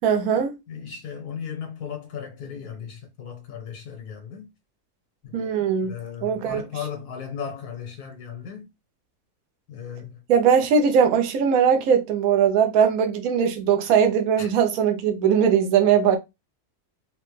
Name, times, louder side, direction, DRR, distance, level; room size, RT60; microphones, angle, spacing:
voice 1, 0.0-0.5 5.3-5.9 6.2-6.6 10.3-16.2, right 7 dB, 70° right, 1.1 m, -20 dB
voice 2, 0.7-4.5 5.2-5.4 5.8-8.7 9.7-10.2 14.4-14.5, left 7 dB, 80° left, 1.6 m, -36 dB
3.9 x 2.1 x 3.1 m
omnidirectional pair, 1.6 m